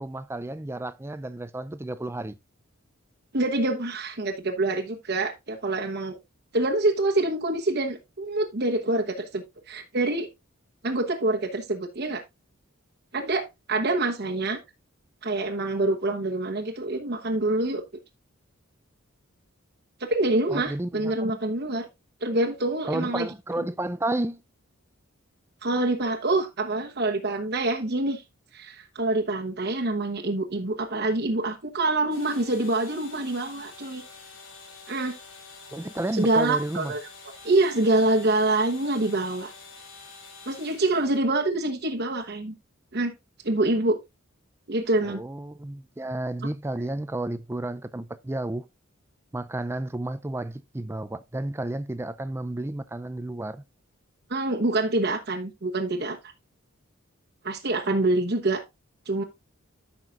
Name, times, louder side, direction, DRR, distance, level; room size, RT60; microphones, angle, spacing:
voice 1, 0.0-2.4 20.5-21.4 22.9-24.4 35.7-36.9 45.0-48.6 49.3-53.6, right 1 dB, 10° right, 0.4 m, -32 dB
voice 2, 3.3-6.2 6.5-10.3 10.8-12.2 13.1-14.6 15.2-17.8 20.0-21.9 22.2-23.3 25.6-28.2 28.5-34.0 34.9-35.2 36.1-37.1 37.4-39.5 40.5-42.5 42.9-43.1 43.4-44.0 44.7-45.2 54.3-56.2 57.4-58.6 59.1-59.2, right 2 dB, 50° right, 1.1 m, -26 dB
sound 1, 32.1-41.3, left 4 dB, 75° left, 2.8 m, -47 dB
13.5 x 5.8 x 2.5 m
head